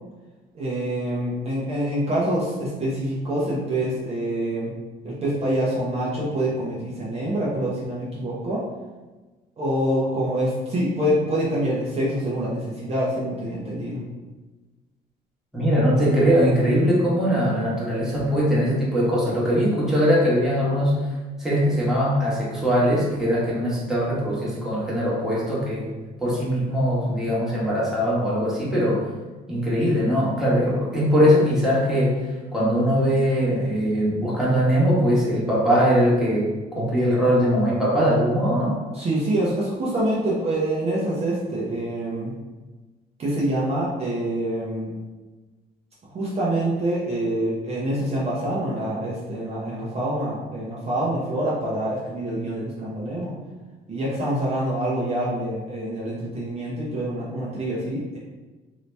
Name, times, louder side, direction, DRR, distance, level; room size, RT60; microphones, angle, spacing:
voice 1, 0.5-4.7 5.0-8.6 9.6-14.0 38.9-42.3 43.2-44.9 46.1-53.3 53.9-58.2, right 1 dB, 35° right, -7 dB, 0.9 m, -26 dB
voice 2, 15.5-21.0 21.4-25.9 26.2-29.0 29.5-32.2 32.5-36.5 36.7-38.7, equal, 5° right, -8 dB, 1.3 m, -21 dB
2.9 x 2.7 x 3.3 m, 1.2 s
cardioid pair, 110°, 17 cm